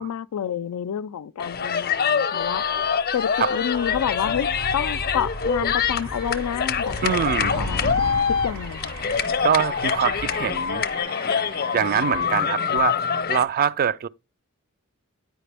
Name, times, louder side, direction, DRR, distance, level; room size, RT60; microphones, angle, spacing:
voice 1, 0.0-2.6 3.1-4.5 4.7-7.8 8.3-8.9, left 9 dB, 80° left, 0.4 m, -29 dB
sound 1, 1.4-13.4, left 7 dB, 45° left, 0.7 m, -25 dB
Animal, 2.4-11.0, equal, 80° right, 2.1 m, -35 dB
sound 2, 5.6-12.3, right 6 dB, 60° right, 0.9 m, -44 dB
voice 2, 7.0-7.6 9.4-10.9 11.7-14.1, right 8 dB, 40° right, 0.3 m, -24 dB
9.1 x 5.0 x 3.3 m
head